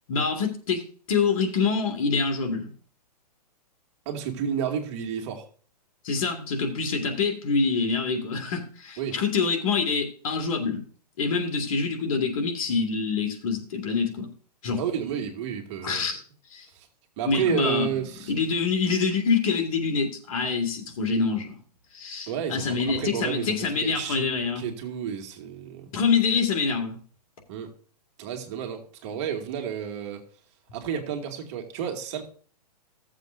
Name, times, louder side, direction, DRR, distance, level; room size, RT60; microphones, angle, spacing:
voice 1, 0.1-0.8 1.1-2.7 6.0-10.8 11.2-14.3 14.6-14.8 15.8-16.2 16.5-16.7 17.2-17.9 18.3-21.6 21.9-24.7 25.9-27.0, left 5 dB, 55° left, 2.2 m, -26 dB
voice 2, 4.1-5.5 9.0-9.2 14.8-16.1 16.7-16.9 17.2-18.3 22.3-25.9 27.5-27.7 28.2-30.2 30.7-32.3, right 8 dB, 45° right, 2.1 m, -31 dB
16.0 x 7.3 x 2.6 m
hypercardioid pair, 135°, 21 cm